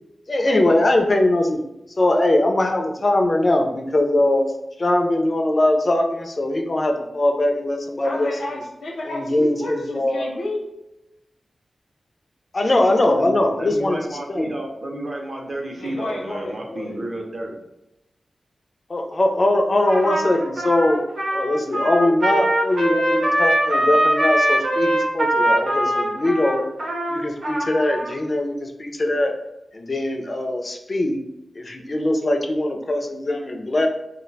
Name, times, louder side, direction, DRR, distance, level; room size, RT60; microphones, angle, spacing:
voice 1, 0.3-1.6 2.0-4.5 4.8-8.3 9.1-10.2 12.5-14.0 14.3-14.5 18.9-21.0 21.3-26.6 27.1-29.3 29.7-31.2 31.6-33.9, left 1 dB, 30° left, 4 dB, 0.3 m, -21 dB
voice 2, 8.0-10.6 15.8-17.0, left 1 dB, 75° left, 0 dB, 0.6 m, -31 dB
voice 3, 13.1-17.6, right 1 dB, 35° right, 0 dB, 0.5 m, -31 dB
Trumpet, 19.8-28.1, right 1 dB, 85° right, 0.8 m, -22 dB
2.2 x 2.1 x 3.9 m, 0.89 s
wide cardioid pair, 175°, 0 cm